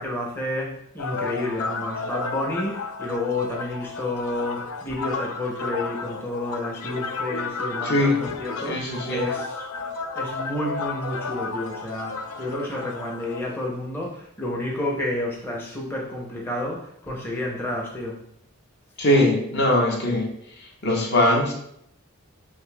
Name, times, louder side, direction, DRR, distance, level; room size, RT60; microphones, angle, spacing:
voice 1, 0.0-9.6 10.2-18.2, left 1 dB, 10° left, -3 dB, 0.6 m, -30 dB
sound 1, 1.0-13.4, left 4 dB, 85° left, 0.4 m, -32 dB
voice 2, 7.8-8.2 8.6-9.3 19.0-20.3 20.6-21.5, left 1 dB, 50° left, 0 dB, 0.8 m, -21 dB
6.4 x 3.2 x 2.2 m, 0.72 s
head